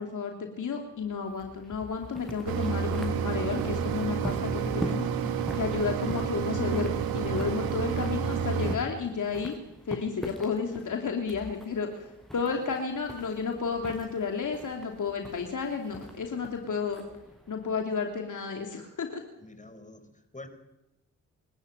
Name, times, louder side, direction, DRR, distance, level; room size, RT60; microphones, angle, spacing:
voice 1, 0.0-5.1 5.6-9.5 9.9-17.0 17.5-19.2, left 5 dB, 55° left, 3 dB, 3.2 m, -32 dB
sound 1, 0.9-18.6, equal, ahead, 7.0 m, -43 dB
Mechanisms, 2.5-8.8, right 7 dB, 80° right, 2.1 m, -30 dB
voice 2, 19.4-20.5, left 2 dB, 20° left, 10 dB, 5.2 m, -47 dB
27.5 x 13.5 x 9.1 m, 0.90 s
hypercardioid pair, 45°, 36 cm